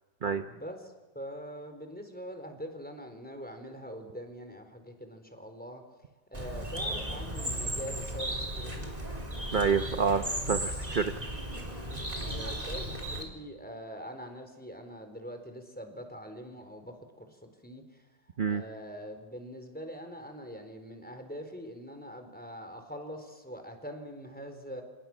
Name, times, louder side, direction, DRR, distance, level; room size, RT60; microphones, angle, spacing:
voice 1, 0.5-5.8 6.3-8.9 11.9-18.0 18.4-24.8, equal, 5° left, 6 dB, 4.0 m, -43 dB
Bird, 6.3-13.2, right 1 dB, 20° right, 3.7 m, -35 dB
voice 2, 9.5-11.3 18.4-18.6, right 5 dB, 40° right, 7 dB, 0.7 m, -28 dB
28.5 x 28.5 x 6.2 m, 1.2 s
omnidirectional pair, 2.0 m